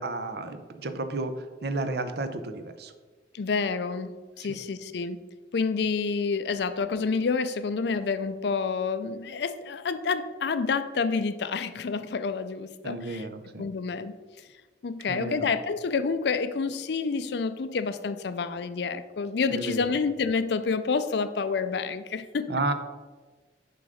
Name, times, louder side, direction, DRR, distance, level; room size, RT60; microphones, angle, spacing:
voice 1, 0.0-2.9 12.8-13.7 15.1-15.5 19.5-19.8 22.5-22.7, right 2 dB, 60° right, 9 dB, 0.7 m, -32 dB
voice 2, 3.3-5.2 5.5-13.3 13.6-14.5 14.8-22.5, left 5 dB, 65° left, 12 dB, 0.4 m, -28 dB
7.0 x 3.8 x 6.3 m, 1.3 s
head